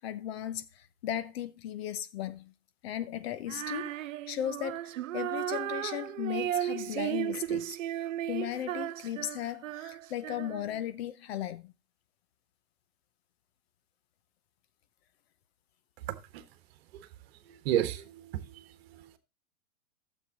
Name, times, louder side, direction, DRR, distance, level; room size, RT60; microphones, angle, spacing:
voice 1, 0.0-2.5 2.8-7.8 8.3-11.7, left 11 dB, 45° left, 0.9 m, -36 dB
Female singing, 3.5-10.8, right 12 dB, 65° right, 0.5 m, -35 dB
voice 2, 16.1-16.4 17.5-18.6 18.9-19.2, right 11 dB, 45° right, 1.4 m, -32 dB
12.0 x 7.6 x 3.7 m
hypercardioid pair, 115°, 42 cm